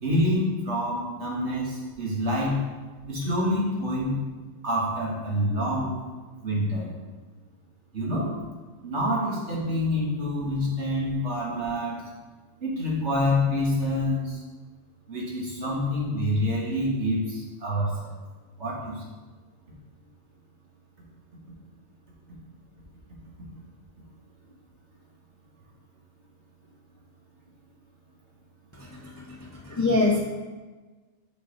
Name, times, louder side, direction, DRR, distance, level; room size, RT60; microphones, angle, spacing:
voice 1, 0.0-2.6 3.1-4.2 4.6-5.9 6.4-6.9 7.9-8.4 8.8-12.0 12.6-14.4 15.1-18.1 18.6-19.0, left 1 dB, 75° right, -4 dB, 2.1 m, -27 dB
voice 2, 28.8-29.4 29.6-30.2, left 3 dB, 20° left, -2 dB, 0.6 m, -25 dB
6.7 x 6.6 x 4.0 m, 1.3 s
omnidirectional pair, 1.2 m